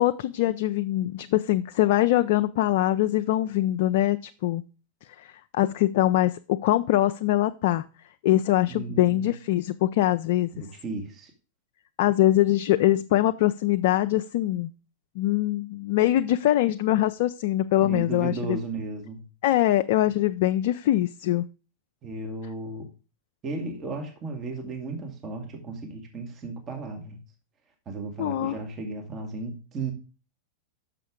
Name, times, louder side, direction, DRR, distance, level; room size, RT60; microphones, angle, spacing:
voice 1, 0.0-4.6 5.2-7.8 8.2-10.5 12.0-14.7 15.2-18.6 19.4-21.4 28.2-28.5, left 14 dB, 55° left, 10 dB, 0.4 m, -23 dB
voice 2, 8.7-9.3 10.5-11.3 17.8-19.2 22.0-22.9 23.4-27.2 27.9-29.9, right 3 dB, 30° right, 3 dB, 1.7 m, -35 dB
6.3 x 5.8 x 5.0 m, 0.34 s
figure-of-eight pair, 95°, 0 cm